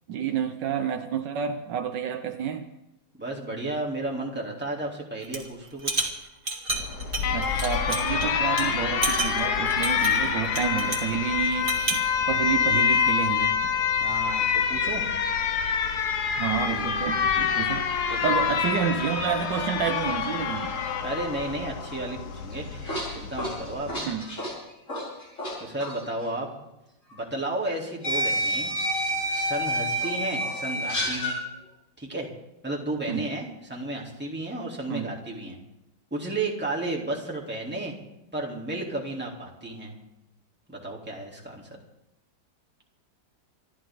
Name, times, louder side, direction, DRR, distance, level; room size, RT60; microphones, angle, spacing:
voice 1, 0.1-2.7 7.3-13.8 16.4-17.9 18.2-20.8 24.0-24.3 33.1-33.3 34.9-35.1, right 8 dB, 80° right, 6 dB, 1.6 m, -29 dB
voice 2, 3.2-6.1 14.0-15.0 18.1-18.5 21.0-23.9 25.6-26.5 27.1-28.7 29.3-31.4 32.0-32.3 32.6-35.6 36.1-37.9 38.3-39.9 40.7-41.7, right 2 dB, 5° right, -3 dB, 3.0 m, -33 dB
sound 1, 5.2-5.5 5.8-8.2 8.6-8.7 9.0-11.1 11.5-12.1, right 3 dB, 30° right, 2.5 m, -30 dB
Alarm, 6.7-23.9, left 7 dB, 65° left, 1.6 m, -26 dB
sound 2, 22.5-25.5 25.8-26.0 27.1-27.2 28.0-31.4, equal, 40° left, 6.6 m, -28 dB
27.0 x 12.0 x 3.8 m, 0.90 s
omnidirectional pair, 1.9 m